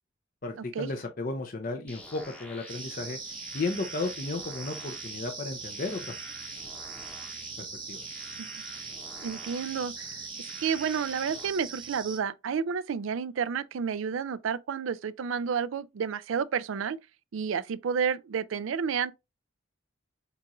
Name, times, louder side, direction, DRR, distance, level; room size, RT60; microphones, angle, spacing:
voice 1, 0.4-3.2 3.5-6.2 7.6-8.0, left 3 dB, 45° left, 0.6 m, -34 dB
sound 1, 1.9-11.5, left 1 dB, 5° left, 0.8 m, -46 dB
sound 2, 2.7-12.2, right 6 dB, 25° right, 0.6 m, -41 dB
voice 2, 9.2-10.2 10.6-17.0 17.3-19.1, right 6 dB, 80° right, 0.4 m, -30 dB
6.7 x 2.5 x 3.0 m
head